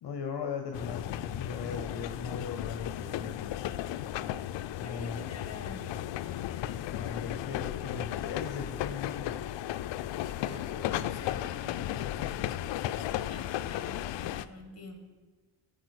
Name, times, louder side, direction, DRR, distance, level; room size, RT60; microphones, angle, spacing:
voice 1, 0.0-4.1 4.8-5.3 6.6-9.3, left 5 dB, 60° left, 5 dB, 0.9 m, -39 dB
sound 1, 0.7-14.5, left 12 dB, 75° left, 0.5 m, -35 dB
voice 2, 4.8-6.1 10.4-15.0, left 3 dB, 35° left, 5 dB, 1.9 m, -47 dB
14.0 x 5.0 x 6.4 m, 1.4 s
cardioid pair, 90°, 44 cm